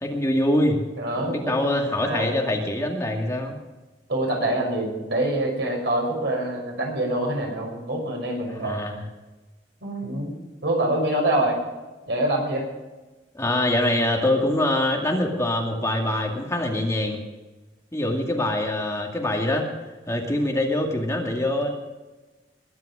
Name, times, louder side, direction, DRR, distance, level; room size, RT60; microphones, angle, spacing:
voice 1, 0.0-0.8 1.2-3.6 8.5-9.0 13.3-17.2 17.9-19.7 20.1-21.7, left 1 dB, 15° left, 1 dB, 2.2 m, -24 dB
voice 2, 1.0-1.6 2.0-2.4 4.1-8.8 9.8-10.3 10.6-11.6 12.1-12.6, right 1 dB, 75° right, 0 dB, 5.9 m, -25 dB
21.5 x 9.5 x 5.0 m, 1.1 s
head